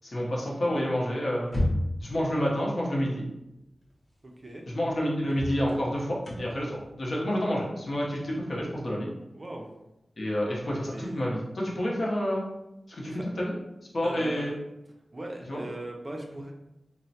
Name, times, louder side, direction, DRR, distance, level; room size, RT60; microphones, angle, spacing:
voice 1, 0.0-1.5 2.0-3.3 4.7-9.1 10.2-12.4 12.9-13.5 13.9-14.5 15.5-15.6, equal, 55° left, -3 dB, 0.7 m, -29 dB
sound 1, 1.4-2.2 3.9-4.0 4.5-4.6 5.3-8.9, left 1 dB, 20° left, 0.7 m, -32 dB
voice 2, 4.2-4.6 9.3-9.7 10.9-11.3 13.0-13.3 14.0-14.6 15.1-16.5, right 1 dB, 30° right, 1 dB, 0.4 m, -39 dB
3.0 x 2.0 x 2.7 m, 0.90 s
wide cardioid pair, 110°, 0 cm